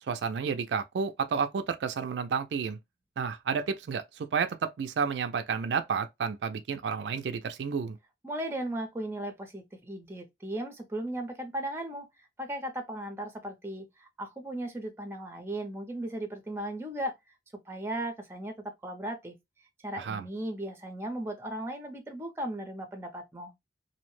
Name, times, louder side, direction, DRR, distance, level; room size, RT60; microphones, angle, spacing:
voice 1, 0.1-2.8 3.2-8.0 20.0-20.2, right 6 dB, 80° right, 0.4 m, -31 dB
voice 2, 8.2-12.1 12.4-17.1 17.7-19.3 19.8-23.5, right 1 dB, 15° right, 0.6 m, -36 dB
2.7 x 2.1 x 3.0 m
head